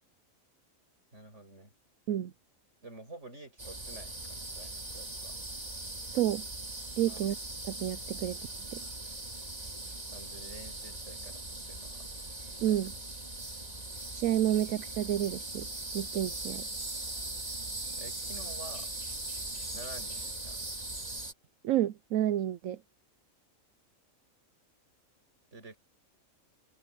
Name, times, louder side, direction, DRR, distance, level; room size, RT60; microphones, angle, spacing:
voice 1, 1.1-1.7 2.8-5.3 7.0-7.2 10.1-12.1 12.5-12.7 18.0-18.9 19.7-20.7 25.5-25.8, right 2 dB, 60° right, 8.3 m, -49 dB
sound 1, 3.6-21.3, right 2 dB, 30° right, 2.6 m, -40 dB
voice 2, 6.1-6.4 7.0-7.4 7.6-8.4 8.7-8.8 12.6-12.9 14.1-15.7 15.9-16.6 21.6-22.8, right 12 dB, 80° right, 1.0 m, -30 dB
omnidirectional pair, 1.4 m